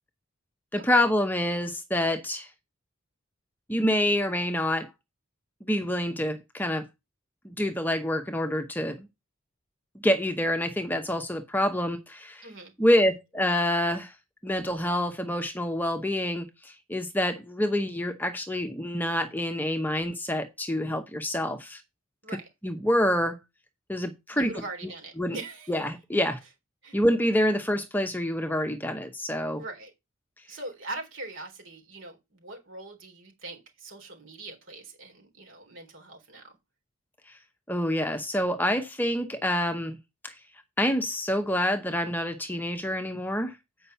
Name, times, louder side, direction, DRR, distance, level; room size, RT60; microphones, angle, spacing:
voice 1, 0.7-2.5 3.7-4.9 5.6-6.9 7.4-9.1 10.0-12.5 12.8-14.1 14.4-21.8 22.6-23.4 23.9-24.6 25.2-25.4 25.7-26.4 26.9-29.6 37.3-37.4 37.7-40.0 40.2-40.4 40.8-43.6, left 1 dB, 10° left, 0.8 m, -27 dB
voice 2, 12.4-12.7 22.2-22.5 24.3-25.7 26.8-27.0 29.6-29.9 30.5-36.6, right 2 dB, 60° right, 3.8 m, -41 dB
8.6 x 5.4 x 5.6 m
head